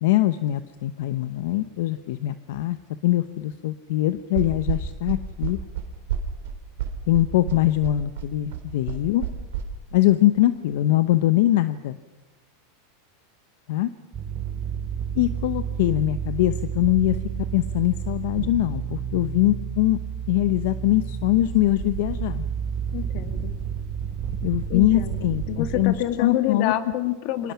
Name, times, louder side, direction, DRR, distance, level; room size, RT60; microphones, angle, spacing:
voice 1, 0.0-2.8 3.0-5.6 7.1-9.2 9.9-12.0 13.7-13.9 15.1-17.2 17.5-20.0 20.3-22.5 24.4-26.7, left 15 dB, 65° left, 11 dB, 0.9 m, -22 dB
sound 1, 4.3-9.6, right 10 dB, 75° right, 3.3 m, -29 dB
sound 2, 14.1-25.8, right 7 dB, 30° right, 5.2 m, -30 dB
voice 2, 22.9-23.5 24.7-27.5, left 12 dB, 45° left, 9 dB, 2.0 m, -27 dB
29.0 x 25.5 x 5.8 m, 1.2 s
supercardioid pair, 155°, 0 cm